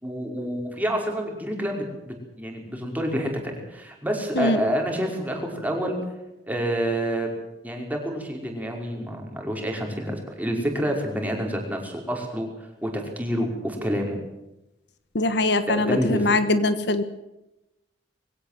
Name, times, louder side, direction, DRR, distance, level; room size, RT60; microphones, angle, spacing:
voice 1, 0.0-6.0 6.4-7.3 7.6-12.5 12.8-14.2 15.7-16.4, equal, 10° right, 1 dB, 5.2 m, -28 dB
voice 2, 15.1-17.0, left 2 dB, 65° left, 11 dB, 1.4 m, -22 dB
22.0 x 17.0 x 7.7 m, 0.92 s
head